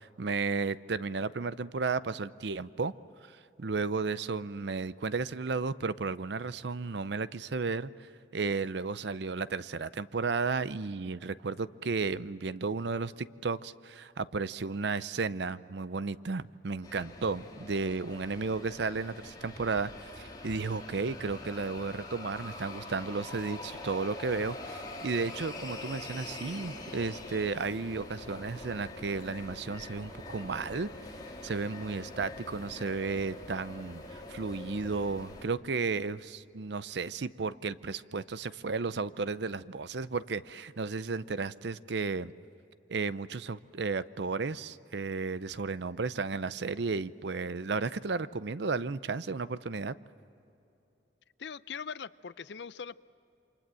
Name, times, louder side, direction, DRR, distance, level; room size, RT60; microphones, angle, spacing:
voice 1, 0.0-2.9 3.2-30.9 31.4-42.3 42.9-50.0, right 4 dB, 70° right, 15 dB, 0.6 m, -33 dB
sound 1, 16.8-35.4, left 2 dB, 20° left, 3.1 m, -44 dB
voice 2, 51.4-53.0, left 6 dB, 70° left, 16 dB, 0.6 m, -41 dB
28.5 x 25.5 x 7.6 m, 2.9 s
head